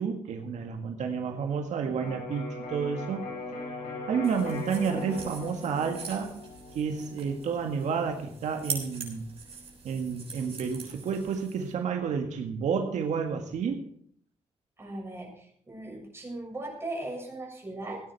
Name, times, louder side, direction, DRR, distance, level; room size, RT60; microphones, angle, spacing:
voice 1, 0.0-3.3 4.1-6.3 6.8-9.2 9.8-13.8, right 6 dB, 85° right, 4 dB, 1.7 m, -30 dB
Electric guitar, 2.0-9.8, left 2 dB, 85° left, 5.9 m, -41 dB
sound 1, 4.2-11.7, right 5 dB, 55° right, 6.5 m, -43 dB
voice 2, 14.8-18.0, right 2 dB, 20° right, -1 dB, 6.6 m, -38 dB
17.0 x 9.9 x 4.7 m, 0.62 s
cardioid pair, 110°, 12 cm